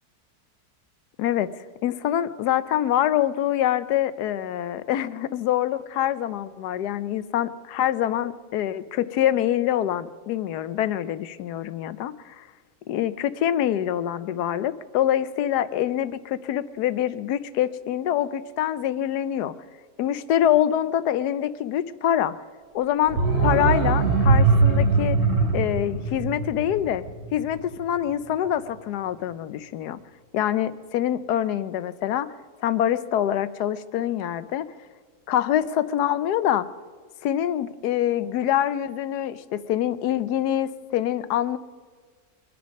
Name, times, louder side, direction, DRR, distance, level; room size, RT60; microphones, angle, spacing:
voice 1, 1.2-1.5 1.8-12.4 12.9-19.5 20.0-22.3 22.7-25.2 25.5-27.0 27.3-30.0 30.3-32.3 32.6-34.7 35.3-36.7 37.2-41.6, left 11 dB, 80° left, 15 dB, 1.3 m, -25 dB
sound 1, 23.0-27.8 28.1-28.2, right 3 dB, 55° right, 4.7 m, -21 dB
24.0 x 10.5 x 5.2 m, 1.5 s
omnidirectional pair, 1.7 m